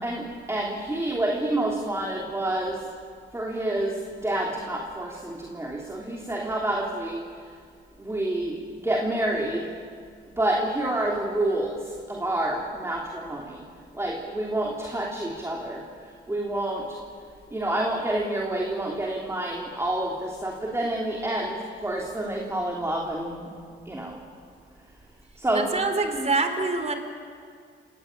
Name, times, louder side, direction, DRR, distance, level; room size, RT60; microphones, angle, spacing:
voice 1, 0.0-2.9 3.3-7.2 8.0-9.7 10.4-13.6 13.9-17.0 17.5-23.5 23.8-24.2 25.4-25.7, right 1 dB, 15° right, -1 dB, 3.3 m, -28 dB
voice 2, 25.5-26.9, right 3 dB, 35° right, 7 dB, 3.9 m, -25 dB
28.5 x 17.5 x 8.9 m, 2.2 s
cardioid pair, 90°, 20 cm